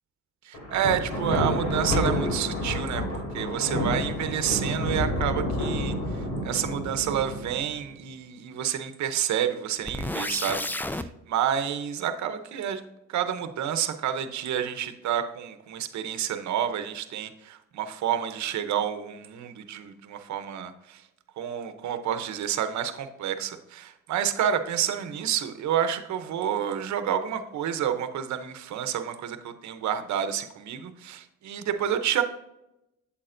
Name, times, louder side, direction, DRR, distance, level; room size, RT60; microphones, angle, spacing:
voice 1, 0.4-12.8 13.1-21.0 21.4-32.2, right 9 dB, 70° right, 9 dB, 0.8 m, -29 dB
Thunder, 0.5-7.8, left 1 dB, 75° left, 2.8 m, -29 dB
sound 1, 9.9-11.1, left 2 dB, 5° left, 0.3 m, -31 dB
8.5 x 7.3 x 2.6 m, 0.88 s
cardioid pair, 90°, 30 cm